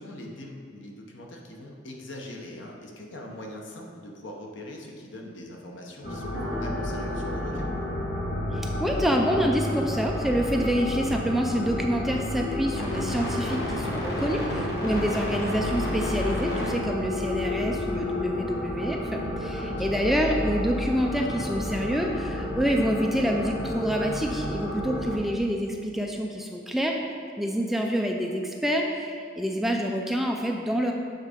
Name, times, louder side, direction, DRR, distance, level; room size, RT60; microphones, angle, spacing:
voice 1, 0.0-7.7 19.5-20.2, left 1 dB, 75° left, 0 dB, 0.9 m, -42 dB
sound 1, 6.0-25.2, left 1 dB, 55° left, 1.2 m, -30 dB
sound 2, 6.3-12.5, equal, 80° right, 1.4 m, -42 dB
voice 2, 8.5-27.0 27.4-30.9, equal, ahead, 1 dB, 0.4 m, -27 dB
7.4 x 4.0 x 5.0 m, 2.2 s
head